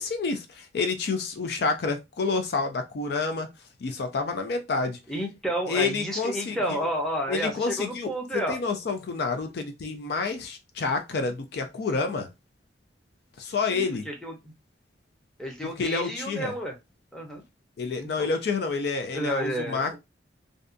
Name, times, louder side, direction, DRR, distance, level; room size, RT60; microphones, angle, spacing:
voice 1, 0.0-3.5 3.8-5.0 5.7-6.6 7.3-8.1 8.5-12.3 13.4-14.1 15.8-16.5 17.8-19.9, left 4 dB, 55° left, 0.4 m, -28 dB
voice 2, 5.1-8.6 13.7-14.3 15.4-16.7 17.1-17.4 18.0-18.3 19.1-20.0, equal, 5° left, 0.6 m, -31 dB
2.6 x 2.2 x 2.5 m
head